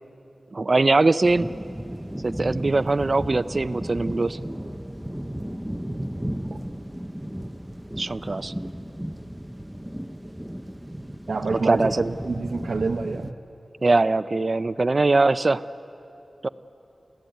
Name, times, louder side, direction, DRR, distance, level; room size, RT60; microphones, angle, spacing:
voice 1, 0.5-1.5 2.2-4.4 8.0-8.5 11.7-12.1 13.8-15.6 16.4-16.5, right 3 dB, 45° right, 14 dB, 0.5 m, -21 dB
sound 1, 1.2-13.3, equal, 5° right, 0.8 m, -34 dB
voice 2, 11.3-13.4, right 3 dB, 70° right, 2 dB, 0.9 m, -27 dB
29.0 x 14.5 x 9.2 m, 2.8 s
wide cardioid pair, 85°, 0 cm